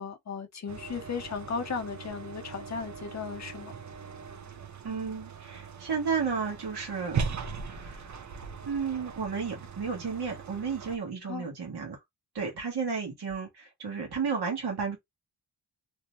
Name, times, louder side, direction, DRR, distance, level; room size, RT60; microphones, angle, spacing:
voice 1, 0.0-3.7 11.2-11.5, left 5 dB, 40° left, 0.6 m, -36 dB
sound 1, 0.7-11.0, right 5 dB, 40° right, 0.5 m, -39 dB
voice 2, 4.8-7.3 7.6-8.2 8.6-12.0 12.3-15.0, right 5 dB, 55° right, 1.0 m, -33 dB
2.6 x 2.1 x 2.9 m
wide cardioid pair, 120°, 45 cm